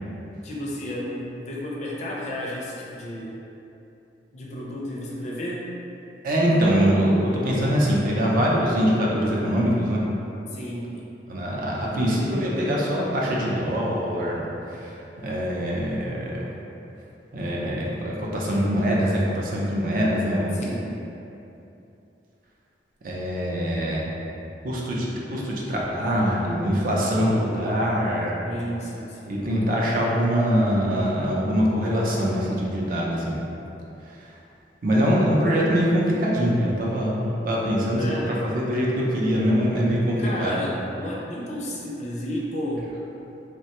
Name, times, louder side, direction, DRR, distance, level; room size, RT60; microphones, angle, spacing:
voice 1, 0.4-3.4 4.3-5.7 10.5-10.9 20.5-20.9 28.4-29.4 37.9-38.4 40.2-42.9, equal, 40° left, -4 dB, 0.4 m, -32 dB
voice 2, 6.2-10.0 11.3-14.9 15.2-16.5 17.3-20.6 23.0-24.1 24.6-28.4 29.3-33.3 34.2-34.3 34.8-38.2 38.4-40.6, equal, 50° right, -4 dB, 0.4 m, -23 dB
3.1 x 2.1 x 2.8 m, 2.8 s
head